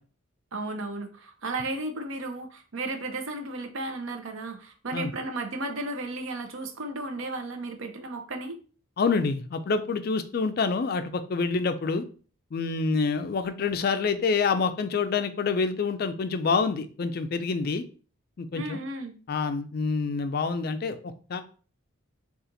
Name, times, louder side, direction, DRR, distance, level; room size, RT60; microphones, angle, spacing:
voice 1, 0.5-8.6 18.5-19.2, right 2 dB, 70° right, 6 dB, 0.7 m, -34 dB
voice 2, 9.0-12.0 12.5-17.8 18.4-18.8 19.3-21.4, left 4 dB, 45° left, 10 dB, 0.3 m, -27 dB
4.1 x 2.4 x 3.9 m, 0.39 s
head